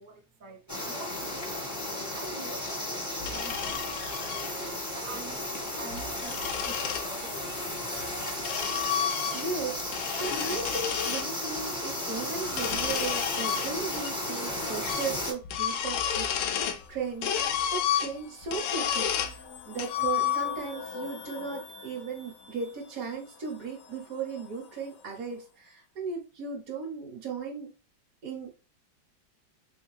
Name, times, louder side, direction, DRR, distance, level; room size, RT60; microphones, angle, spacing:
voice 1, 0.0-1.7 2.1-3.8 4.3-7.4, right 3 dB, 75° right, 0.4 m, -46 dB
sound 1, 0.7-15.3, left 1 dB, 20° left, 0.5 m, -34 dB
sound 2, 3.2-4.5 5.7-7.1 8.0-9.6 9.9-11.3 12.5-14.1 14.4-14.5 14.8-15.2 15.4-16.8 17.2-19.4 19.8-20.7, left 9 dB, 90° left, 1.3 m, -31 dB
voice 2, 8.9-27.7 28.2-28.6, right 5 dB, 55° right, 1.1 m, -37 dB
sound 3, 15.7-25.4, left 4 dB, 65° left, 0.8 m, -47 dB
3.6 x 3.4 x 3.1 m
omnidirectional pair, 2.0 m